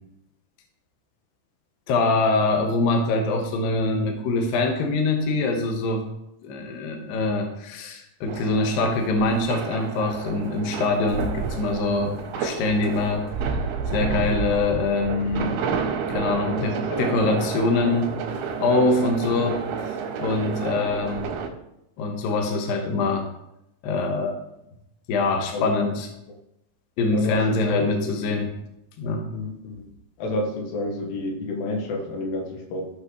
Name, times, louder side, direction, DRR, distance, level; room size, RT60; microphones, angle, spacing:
voice 1, 1.9-6.0 6.4-13.3 13.9-15.5 16.1-18.2 18.6-19.6 20.2-21.3 22.0-23.3 23.8-24.3 25.1-26.1 27.0-28.5 29.0-29.3, left 3 dB, 60° left, 2 dB, 2.6 m, -24 dB
sound 1, 8.3-21.5, right 6 dB, 85° right, 3.5 m, -30 dB
voice 2, 16.9-17.4 19.0-19.4 20.7-20.8 25.5-25.8 26.3-26.4 27.1-28.4 29.3-29.8 30.2-32.9, left 2 dB, 85° left, 1 dB, 4.0 m, -30 dB
16.5 x 6.3 x 3.2 m, 0.82 s
omnidirectional pair, 5.3 m